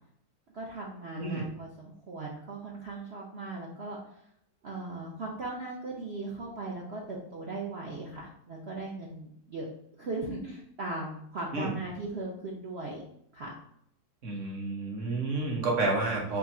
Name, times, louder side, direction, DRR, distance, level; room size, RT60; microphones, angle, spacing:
voice 1, 0.5-4.2 4.6-9.7 10.0-13.0 13.3-13.5, right 2 dB, 75° right, -2 dB, 0.5 m, -38 dB
voice 2, 14.2-16.4, right 3 dB, 45° right, -1 dB, 1.2 m, -30 dB
4.4 x 2.8 x 4.2 m, 0.71 s
omnidirectional pair, 2.1 m